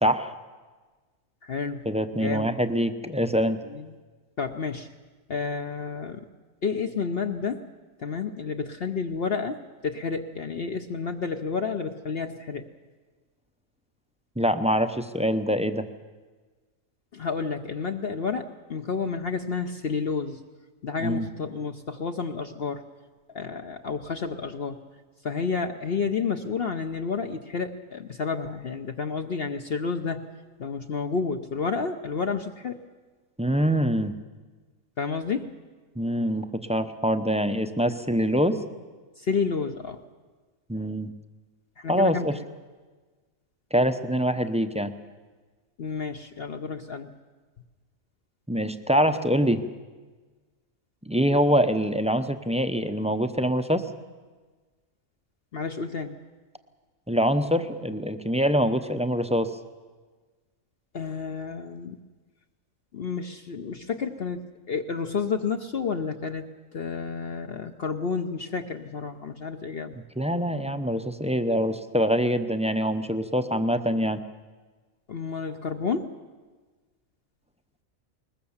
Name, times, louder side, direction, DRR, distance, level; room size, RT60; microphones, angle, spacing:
voice 1, 0.0-0.3 1.9-3.6 14.4-15.8 21.0-21.3 33.4-34.1 36.0-38.6 40.7-41.1 41.9-42.3 43.7-44.9 48.5-49.6 51.1-53.8 57.1-59.5 70.2-74.2, equal, 5° right, 9 dB, 0.6 m, -24 dB
voice 2, 1.4-1.9 2.1-2.5 3.6-4.0 4.4-4.9 5.3-6.3 6.6-7.6 8.0-12.6 17.1-20.4 20.8-22.8 23.3-24.8 25.2-30.2 30.6-32.8 35.0-35.5 39.2-40.0 41.8-42.4 45.8-47.1 55.5-56.1 60.9-62.0 62.9-66.5 66.7-70.0 75.1-76.1, left 5 dB, 50° left, 5 dB, 0.9 m, -30 dB
21.0 x 20.5 x 7.2 m, 1.3 s
omnidirectional pair, 1.4 m